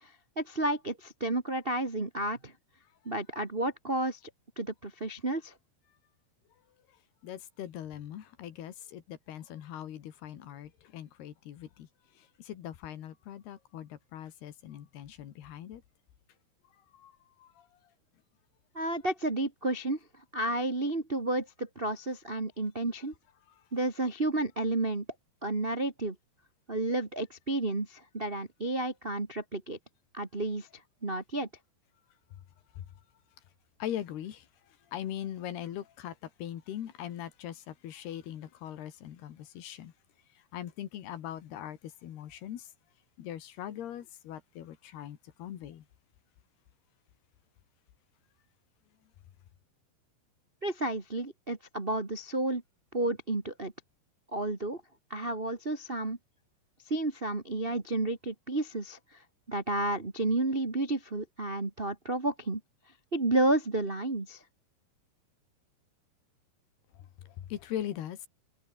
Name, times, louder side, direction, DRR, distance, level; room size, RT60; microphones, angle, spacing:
voice 1, 0.0-2.5 3.0-4.2 4.5-5.5 18.7-20.0 20.3-23.1 23.7-25.0 25.4-26.1 26.7-29.8 30.1-30.7 31.0-31.5 50.6-52.6 52.9-53.7 54.3-54.8 55.1-56.2 56.9-59.0 59.5-62.6 63.1-64.4, right 2 dB, 40° right, 0.8 m, -31 dB
voice 2, 7.2-11.9 12.2-15.8 16.9-17.1 17.4-17.7 23.5-23.6 32.3-32.4 32.7-32.8 33.8-39.9 40.4-42.7 43.2-45.9 66.9-68.3, left 11 dB, 70° left, 3.8 m, -41 dB
omnidirectional pair, 4.9 m